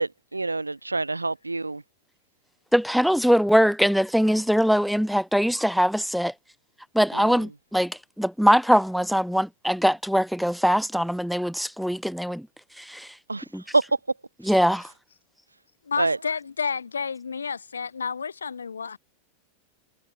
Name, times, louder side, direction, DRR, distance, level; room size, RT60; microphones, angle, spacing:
voice 1, 0.0-1.8 7.1-7.3 13.3-13.4 13.7-13.8 16.0-16.2, right 3 dB, 80° right, 3.4 m, -26 dB
voice 2, 2.7-6.3 6.9-12.5 12.8-13.1 13.5-13.6 14.4-14.9, equal, ahead, 0.8 m, -22 dB
voice 3, 15.9-19.0, left 6 dB, 75° left, 3.2 m, -30 dB
figure-of-eight pair, 90°, 0 cm